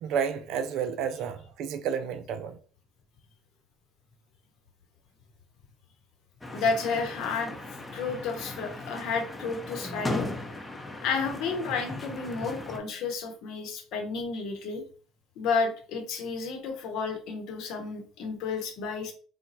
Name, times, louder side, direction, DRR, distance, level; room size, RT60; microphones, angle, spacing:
voice 1, 0.0-2.6, right 7 dB, 70° right, 0.3 m, -31 dB
sound 1, 6.4-12.8, left 2 dB, 15° left, 0.7 m, -37 dB
voice 2, 6.5-7.5 7.9-10.3 11.0-14.8 15.4-19.1, left 4 dB, 70° left, 0.9 m, -31 dB
4.2 x 2.2 x 2.6 m
supercardioid pair, 90°, 0 cm